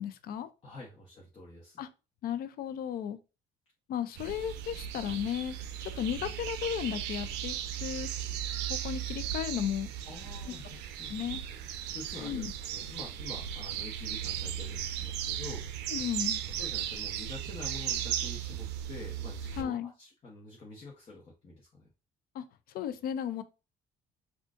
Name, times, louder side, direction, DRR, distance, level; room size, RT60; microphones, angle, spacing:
voice 1, 0.0-0.5 1.8-1.9 2.2-3.2 3.9-5.6 5.8-7.6 7.8-8.2 8.7-9.9 10.5-10.6 11.1-11.4 12.2-12.5 15.9-16.4 19.6-19.9 22.3-22.4 22.7-23.4, left 9 dB, 60° left, 0.4 m, -34 dB
voice 2, 0.6-1.8 10.1-11.1 11.5-11.6 11.9-15.7 16.5-21.9, left 2 dB, 35° left, 1.0 m, -47 dB
sound 1, 4.2-19.6, right 10 dB, 90° right, 0.4 m, -36 dB
3.7 x 2.4 x 2.5 m
cardioid pair, 110°, 17 cm